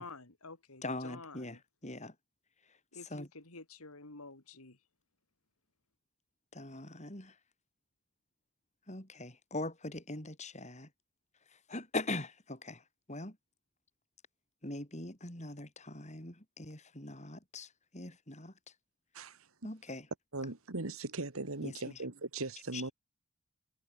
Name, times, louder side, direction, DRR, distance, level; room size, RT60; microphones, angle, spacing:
voice 1, 0.0-1.6 2.9-4.8, left 3 dB, 75° left, 3.0 m, -50 dB
voice 2, 0.8-2.1 3.1-3.3 6.5-7.3 8.9-10.9 11.7-12.8 13.1-13.4 14.6-18.5 19.6-20.1 21.6-21.7 22.7-22.9, left 2 dB, 30° left, 6.0 m, -41 dB
voice 3, 19.1-19.5 20.3-22.9, right 2 dB, 65° right, 1.8 m, -39 dB
head